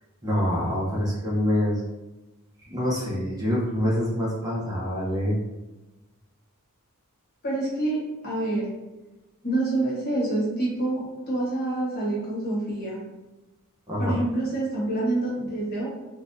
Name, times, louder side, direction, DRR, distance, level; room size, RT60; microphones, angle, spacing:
voice 1, 0.2-1.8 2.7-5.4 13.9-14.2, left 1 dB, 15° right, -6 dB, 0.7 m, -25 dB
voice 2, 7.4-8.0 8.2-8.7 9.4-13.0 14.0-15.9, right 2 dB, 45° left, -5 dB, 1.1 m, -27 dB
3.8 x 2.4 x 2.6 m, 1.1 s
head